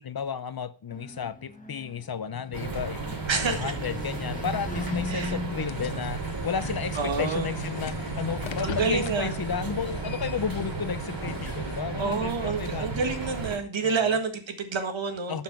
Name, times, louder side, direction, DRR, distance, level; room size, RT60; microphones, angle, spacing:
voice 1, 0.0-3.0 3.3-13.2 13.8-14.2 15.3-15.4, left 7 dB, 55° left, 0.8 m, -33 dB
sound 1, 0.9-9.3, left 2 dB, 15° left, 1.5 m, -40 dB
sound 2, 2.5-13.6, right 3 dB, 50° right, 2.9 m, -34 dB
voice 2, 3.3-3.7 5.1-5.4 7.0-7.5 8.6-9.3 12.0-15.4, right 5 dB, 90° right, 1.8 m, -28 dB
sound 3, 5.7-11.8, left 9 dB, 85° left, 0.8 m, -42 dB
11.5 x 5.7 x 6.0 m
wide cardioid pair, 105°, 44 cm